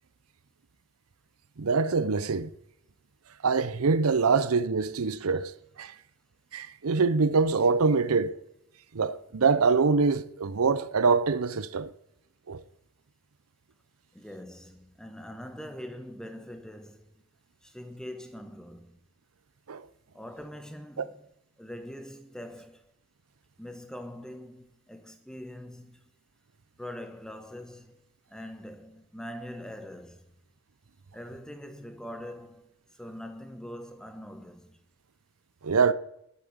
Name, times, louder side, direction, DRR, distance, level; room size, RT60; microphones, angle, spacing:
voice 1, 1.6-2.5 3.4-5.5 5.8-5.9 6.5-8.4 8.9-11.9 12.5-12.6 19.7-19.8 21.0-21.1 35.6-35.9, right 4 dB, 90° right, 0.6 m, -24 dB
voice 2, 14.1-17.2 17.6-19.0 20.1-21.2 21.6-22.9 23.6-26.1 26.8-30.3 31.1-34.8, equal, 5° left, 1.3 m, -43 dB
11.5 x 8.3 x 8.0 m
head